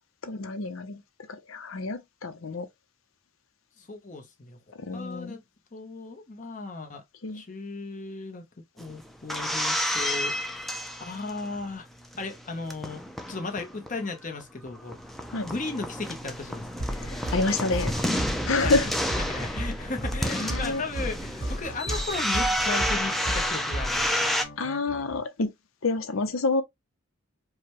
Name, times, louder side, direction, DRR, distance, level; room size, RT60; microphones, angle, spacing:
voice 1, 0.2-1.0 1.5-2.7 4.8-5.3 7.2-7.4 15.3-15.5 17.0-17.9 18.4-18.9 20.3-20.8 24.6-25.5 25.8-26.6, left 3 dB, 90° left, 0.7 m, -28 dB
voice 2, 3.8-4.6 4.9-5.4 5.7-7.0 7.3-8.4 8.8-10.3 11.0-11.9 12.2-13.0 13.3-15.0 15.4-16.9 18.6-18.9 19.2-24.2, left 3 dB, 40° left, 0.9 m, -36 dB
sound 1, 8.8-11.6 12.0-14.1 14.4-14.5 14.7-24.4, equal, ahead, 0.4 m, -30 dB
sound 2, 16.8-25.2, equal, 65° left, 1.6 m, -34 dB
4.8 x 2.3 x 2.9 m
head